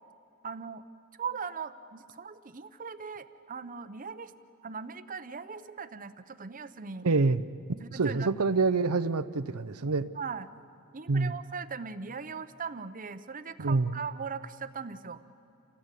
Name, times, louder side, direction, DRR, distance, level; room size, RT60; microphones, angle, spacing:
voice 1, 0.4-0.8 1.2-4.3 4.6-7.1 7.8-8.3 10.1-10.5 10.9-15.2, right 5 dB, 40° right, 12 dB, 0.8 m, -39 dB
voice 2, 7.0-7.4 7.9-10.1 11.1-11.3 13.6-14.0, right 3 dB, 70° right, 12 dB, 0.7 m, -26 dB
28.5 x 16.0 x 8.3 m, 2.7 s
head